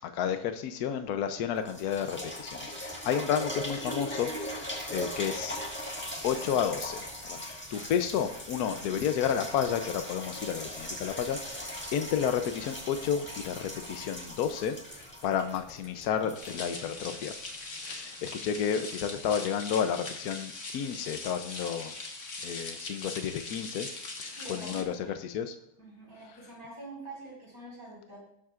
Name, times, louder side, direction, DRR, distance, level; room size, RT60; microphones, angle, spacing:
voice 1, 0.0-5.6 6.2-7.0 7.3-7.4 7.7-17.3 17.8-21.9 22.4-23.9 24.2-25.5, left 8 dB, 75° left, 8 dB, 1.2 m, -31 dB
sound 1, 1.1-1.2 1.6-17.3 17.9-18.0, equal, 5° left, 1.6 m, -39 dB
sound 2, 16.3-24.8, left 3 dB, 50° left, 1.6 m, -41 dB
voice 2, 24.3-25.1 25.8-28.2, right 2 dB, 60° right, -5 dB, 5.4 m, -46 dB
19.0 x 7.5 x 2.5 m, 0.74 s
omnidirectional pair, 1.7 m